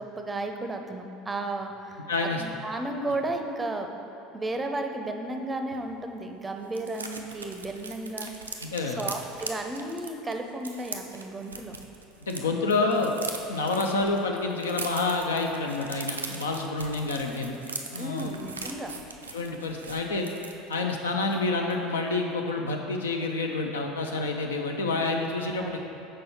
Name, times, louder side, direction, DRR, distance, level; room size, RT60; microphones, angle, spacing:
voice 1, 0.0-3.9 4.3-11.7 18.0-19.0 25.5-25.7, right 2 dB, 20° right, 4 dB, 0.5 m, -34 dB
voice 2, 2.1-2.4 8.7-9.1 12.3-13.2 13.5-17.6 17.9-18.4 19.3-20.3 20.7-25.8, left 3 dB, 75° left, 2 dB, 0.4 m, -28 dB
sound 1, 5.7-5.8 6.1-6.2 6.4-12.4 12.7-20.9 21.3-21.4 21.7-22.0, right 4 dB, 85° right, 0.4 m, -40 dB
6.2 x 4.4 x 4.2 m, 2.8 s
figure-of-eight pair, 70°, 0 cm